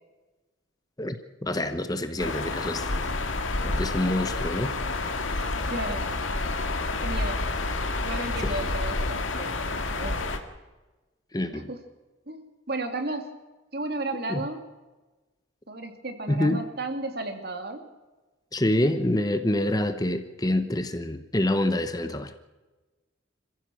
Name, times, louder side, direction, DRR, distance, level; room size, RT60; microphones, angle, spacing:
voice 1, 1.4-2.9 3.6-4.7 8.4-8.5 11.3-11.7 14.3-14.4 16.3-16.6 18.5-22.3, left 1 dB, 20° left, 1.1 m, -26 dB
sound 1, 2.2-10.4, left 2 dB, 90° left, 2.0 m, -29 dB
voice 2, 5.6-6.1 7.0-7.4 8.0-9.6 9.9-10.2 11.5-11.8 12.3-13.3 13.7-14.6 15.7-17.9, right 2 dB, 55° right, 2.4 m, -33 dB
27.0 x 15.5 x 6.2 m
head